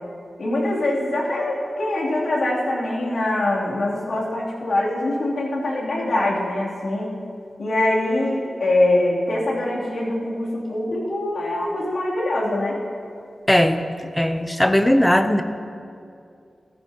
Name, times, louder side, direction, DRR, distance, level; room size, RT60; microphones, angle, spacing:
voice 1, 0.4-7.1 7.6-12.8, left 1 dB, 75° left, -6 dB, 2.9 m, -23 dB
voice 2, 13.5-13.8 14.2-15.4, left 1 dB, 5° left, 7 dB, 0.6 m, -18 dB
15.0 x 14.0 x 2.9 m, 2.4 s
wide cardioid pair, 145°, 0 cm